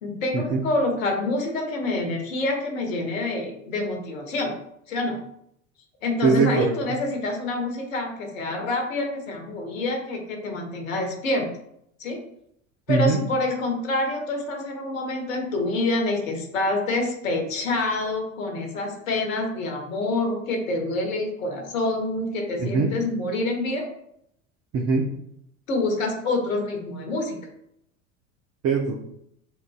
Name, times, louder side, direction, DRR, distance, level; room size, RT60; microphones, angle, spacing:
voice 1, 0.0-4.5 4.9-5.2 6.0-11.5 12.0-12.2 12.9-23.9 25.7-27.4, left 2 dB, 70° left, 3 dB, 1.4 m, -27 dB
voice 2, 6.2-6.7 12.9-13.2 22.6-22.9 24.7-25.1 28.6-29.0, right 4 dB, 35° right, 1 dB, 0.7 m, -21 dB
7.2 x 2.6 x 2.4 m, 0.74 s
figure-of-eight pair, 75°, 41 cm